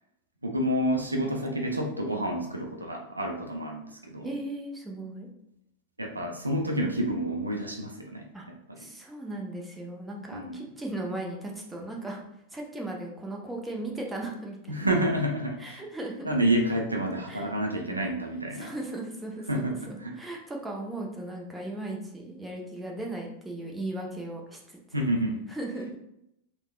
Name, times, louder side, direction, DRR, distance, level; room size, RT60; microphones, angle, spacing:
voice 1, 0.4-4.3 6.0-8.3 8.7-8.8 10.3-10.6 14.7-15.8 16.2-18.8 19.5-20.1 24.9-25.4, right 1 dB, 80° right, 1 dB, 0.4 m, -29 dB
voice 2, 4.2-5.3 8.3-8.5 8.8-12.2 12.5-14.8 15.6-16.3 17.3-17.5 18.5-24.8 25.5-26.0, right 2 dB, 5° right, -1 dB, 0.6 m, -37 dB
3.4 x 2.1 x 2.3 m, 0.80 s
figure-of-eight pair, 90°, 0 cm